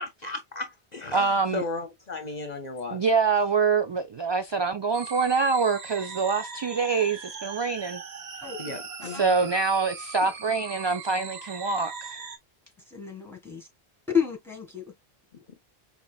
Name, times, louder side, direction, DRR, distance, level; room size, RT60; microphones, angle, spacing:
voice 1, 0.0-3.0 8.6-9.5 10.2-10.3 15.5-15.6, left 2 dB, 45° left, 0.8 m, -36 dB
voice 2, 1.1-1.6 2.9-8.0 9.1-12.2, right 4 dB, 45° right, 0.3 m, -25 dB
sound 1, 4.9-12.4, right 5 dB, 80° right, 1.1 m, -40 dB
voice 3, 8.4-8.8 9.1-9.2 12.9-13.7 14.1-14.9, left 7 dB, ahead, 1.6 m, -30 dB
5.4 x 2.8 x 2.3 m
omnidirectional pair, 1.0 m